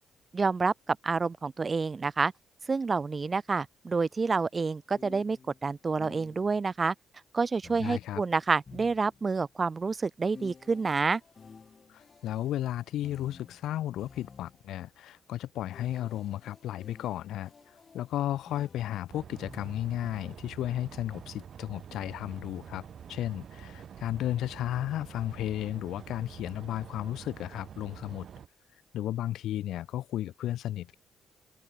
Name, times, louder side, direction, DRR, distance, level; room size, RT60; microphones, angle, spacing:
voice 1, 0.3-2.3 2.7-6.9 7.3-11.2, right 4 dB, 30° right, 0.5 m, -28 dB
sound 1, 4.9-6.7 7.6-9.5 10.3-14.8 15.7-20.2, left 5 dB, 40° left, 4.8 m, -53 dB
voice 2, 7.8-8.2 11.9-22.8 23.1-28.2 28.9-31.0, left 13 dB, 80° left, 0.4 m, -34 dB
sound 2, 19.1-28.5, right 8 dB, 55° right, 0.9 m, -47 dB
cardioid pair, 90°, 0 cm